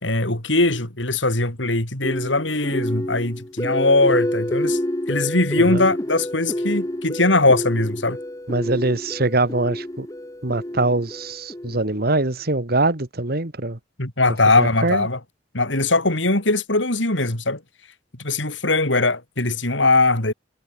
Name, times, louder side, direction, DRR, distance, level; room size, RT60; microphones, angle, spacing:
voice 1, 0.0-4.8 5.1-8.2 14.0-15.2 15.5-17.6 18.2-20.3, left 2 dB, 85° left, 6.0 m, -20 dB
sound 1, 2.0-12.1, left 1 dB, 20° left, 1.7 m, -28 dB
voice 2, 8.5-10.1 10.4-13.8 14.6-15.1, right 2 dB, 55° right, 2.1 m, -23 dB
head